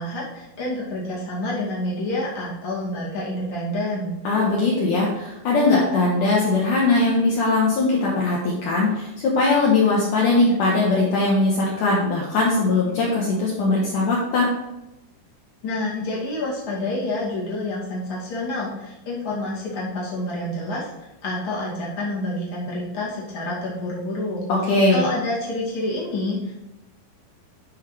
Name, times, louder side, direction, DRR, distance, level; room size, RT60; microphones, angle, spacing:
voice 1, 0.0-4.1 15.6-24.4 24.9-26.6, left 1 dB, 35° left, -6 dB, 2.3 m, -28 dB
voice 2, 4.2-14.5 24.7-25.1, left 3 dB, 75° left, -4 dB, 1.9 m, -20 dB
11.0 x 6.0 x 3.3 m, 0.96 s
omnidirectional pair, 5.3 m